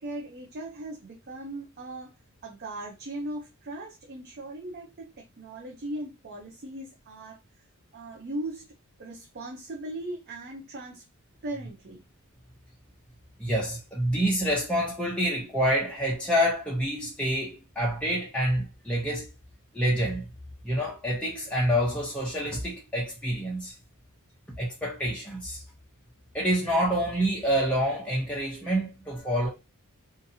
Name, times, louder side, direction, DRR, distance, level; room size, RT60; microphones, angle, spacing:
voice 1, 0.0-2.1 2.4-7.6 7.9-8.7 9.0-11.0 11.4-12.0, right 1 dB, 45° right, 0.4 m, -38 dB
voice 2, 13.4-19.3 19.7-20.2 20.6-23.7 24.6-25.6 26.3-29.5, equal, 5° left, 0.6 m, -27 dB
2.7 x 2.5 x 2.6 m
head